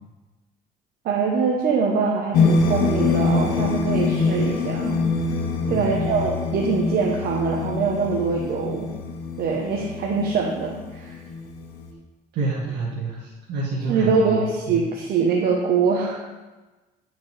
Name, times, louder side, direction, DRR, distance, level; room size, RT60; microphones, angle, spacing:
voice 1, 1.0-5.0 5.7-8.9 9.4-11.2 13.9-16.3, right 5 dB, 65° right, -1 dB, 0.9 m, -23 dB
sound 1, 2.3-11.9, left 4 dB, 85° left, 1.0 m, -25 dB
voice 2, 5.7-6.0 12.3-14.4 14.7-14.8, right 3 dB, 80° right, -6 dB, 1.6 m, -28 dB
11.0 x 5.1 x 3.3 m, 1.2 s
cardioid pair, 110°, 17 cm